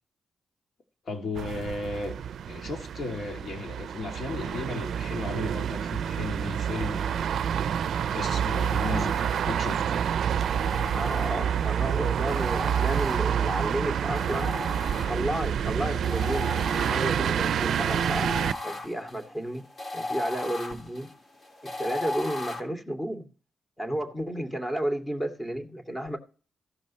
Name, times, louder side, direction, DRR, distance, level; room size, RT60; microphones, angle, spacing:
voice 1, 1.1-2.2 2.5-7.4 8.1-10.0, left 3 dB, 65° left, 2.5 m, -35 dB
sound 1, 1.3-18.5, right 8 dB, 80° right, 0.4 m, -28 dB
sound 2, 8.5-9.8 10.4-11.7 12.3-13.6 14.2-15.5 16.0-22.6, left 2 dB, 45° left, 3.3 m, -37 dB
voice 2, 10.9-14.6 15.1-18.3 18.6-19.6 19.9-21.1 21.6-23.3 23.8-26.2, equal, 15° left, 2.6 m, -32 dB
15.5 x 5.3 x 4.3 m
cardioid pair, 60°, 0 cm